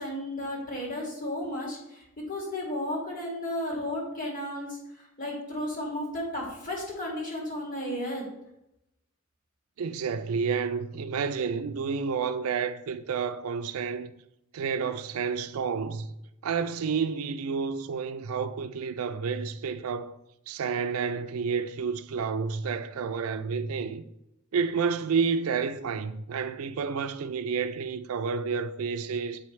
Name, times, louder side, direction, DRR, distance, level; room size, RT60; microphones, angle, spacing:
voice 1, 0.0-8.2, left 1 dB, 40° left, 2.2 m, -34 dB
voice 2, 9.8-14.1 14.5-16.1 16.4-20.1 20.5-24.0 24.5-29.4, right 5 dB, 85° right, 0.4 m, -30 dB
7.7 x 4.7 x 3.2 m
head